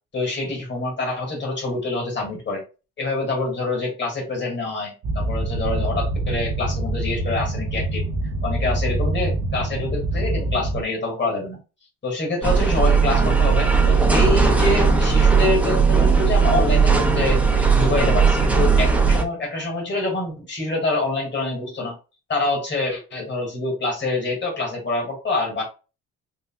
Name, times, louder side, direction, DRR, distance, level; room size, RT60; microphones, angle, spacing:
voice 1, 0.1-2.6 3.0-8.1 8.4-11.6 12.0-22.0 22.3-25.6, left 2 dB, 35° left, -1 dB, 2.1 m, -26 dB
sound 1, 5.0-10.8, right 2 dB, 70° right, 0.8 m, -25 dB
sound 2, 12.4-19.2, right 5 dB, 5° right, 0.8 m, -17 dB
4.0 x 3.3 x 2.3 m, 0.31 s
cardioid pair, 90°, 30 cm